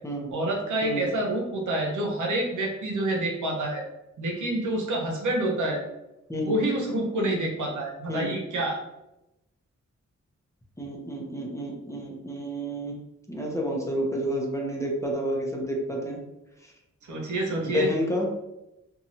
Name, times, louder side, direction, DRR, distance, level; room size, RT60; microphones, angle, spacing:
voice 1, 0.3-3.8 4.2-5.8 6.4-8.8 17.0-17.9, right 1 dB, 75° right, 0 dB, 0.8 m, -27 dB
voice 2, 10.8-13.0 13.3-16.2 16.6-16.7 17.6-18.3, equal, 10° left, -1 dB, 0.7 m, -30 dB
2.8 x 2.3 x 2.8 m, 0.92 s
cardioid pair, 55°, 30 cm